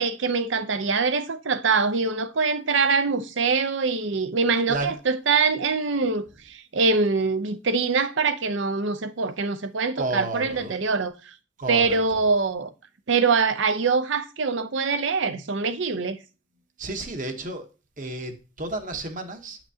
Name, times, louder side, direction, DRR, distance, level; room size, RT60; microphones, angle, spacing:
voice 1, 0.0-11.3 11.7-12.7 13.1-16.2, right 4 dB, 65° right, 0.6 m, -24 dB
voice 2, 10.0-10.8 11.6-12.2 16.8-17.7 18.0-19.6, right 2 dB, 40° right, 1.0 m, -32 dB
8.8 x 5.9 x 2.8 m
head